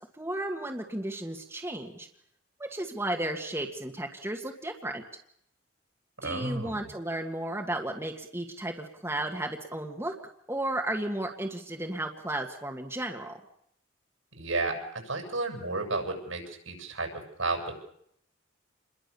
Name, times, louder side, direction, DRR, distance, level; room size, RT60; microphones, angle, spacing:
voice 1, 0.2-2.1 2.6-5.0 6.2-10.1 10.5-13.4, right 1 dB, 10° right, 2 dB, 1.9 m, -34 dB
voice 2, 6.2-6.9 14.4-17.8, right 2 dB, 80° right, 3 dB, 7.5 m, -32 dB
28.5 x 21.5 x 7.0 m, 0.72 s
head